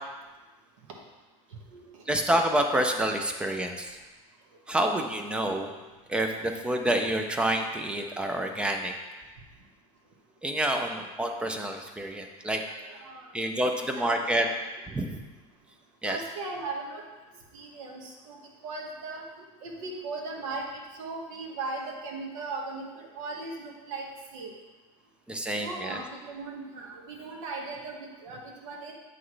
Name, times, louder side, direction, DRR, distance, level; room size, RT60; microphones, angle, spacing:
voice 1, 2.1-3.9 4.7-5.7 6.1-8.9 10.4-12.6 13.3-14.5 14.9-15.2 16.0-16.2 25.3-26.0, right 1 dB, 5° right, 4 dB, 0.3 m, -28 dB
voice 2, 12.7-13.3 13.7-14.5 16.0-17.0 17.5-18.4 18.6-19.2 19.6-20.6 21.0-24.1 24.3-24.5 25.6-28.9, right 3 dB, 80° right, 0 dB, 1.5 m, -38 dB
7.9 x 5.8 x 3.2 m, 1.2 s
cardioid pair, 175°, 16 cm